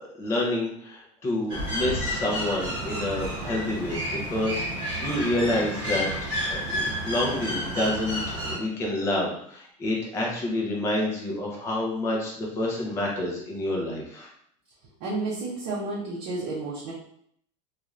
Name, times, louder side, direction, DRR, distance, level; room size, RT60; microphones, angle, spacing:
voice 1, 0.2-4.0 4.3-6.1 6.5-14.3, left 1 dB, 15° left, -3 dB, 0.5 m, -28 dB
red legged seriema, 1.5-8.6, equal, 30° right, 1.3 m, -30 dB
voice 2, 15.0-16.9, right 3 dB, 45° right, -5 dB, 0.6 m, -31 dB
2.5 x 2.4 x 3.1 m, 0.67 s
supercardioid pair, 180°, 16 cm